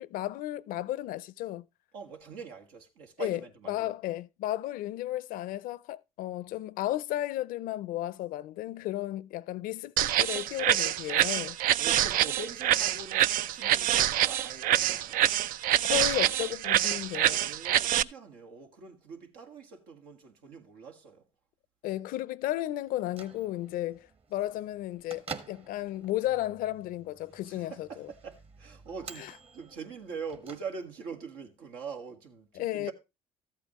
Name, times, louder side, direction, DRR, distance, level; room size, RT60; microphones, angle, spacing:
voice 1, 0.0-1.7 3.2-3.4 3.7-11.6 15.8-17.5 21.8-28.1 29.2-29.3 32.5-32.9, left 14 dB, 75° left, 0.5 m, -34 dB
voice 2, 1.9-3.9 11.8-15.2 17.2-21.2 27.5-32.9, right 5 dB, 90° right, 1.9 m, -43 dB
sound 1, 10.0-18.0, right 12 dB, 70° right, 0.4 m, -26 dB
Bell / Microwave oven, 22.9-31.2, right 5 dB, 40° right, 1.5 m, -49 dB
13.5 x 8.4 x 3.0 m
supercardioid pair, 85°, 15 cm